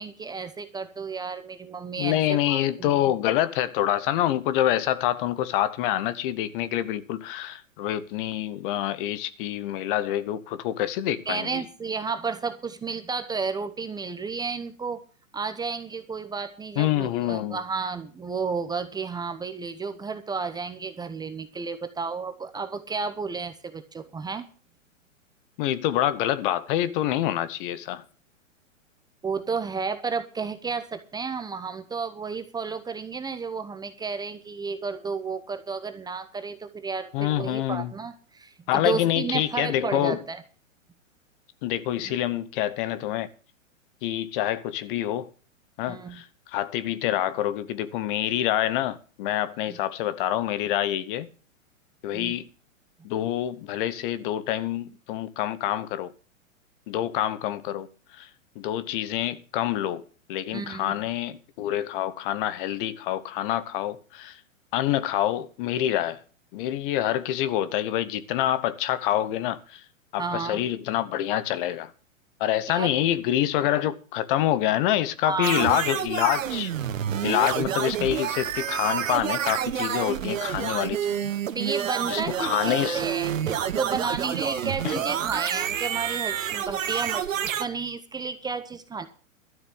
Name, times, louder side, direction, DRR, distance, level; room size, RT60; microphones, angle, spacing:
voice 1, 0.0-3.1 11.3-15.0 15.3-24.5 29.2-40.4 42.0-42.2 45.9-46.2 49.7-49.8 52.1-52.3 60.5-61.0 70.2-70.6 72.7-72.9 75.3-75.8 81.5-89.1, right 5 dB, 10° right, 0.8 m, -32 dB
voice 2, 2.0-11.6 16.8-17.6 25.6-28.0 37.1-37.9 38.7-40.2 41.6-43.3 44.0-45.3 45.8-51.3 52.0-52.5 53.0-56.1 56.9-57.9 58.2-58.3 58.6-60.0 60.3-64.4 64.7-66.2 66.5-69.8 70.1-71.9 72.4-76.7 77.2-81.3 82.1-83.0 84.8-85.0, left 12 dB, 40° left, 1.0 m, -26 dB
sound 1, 75.4-87.7, right 9 dB, 75° right, 1.2 m, -28 dB
12.5 x 6.7 x 8.4 m
hypercardioid pair, 120°, 40 cm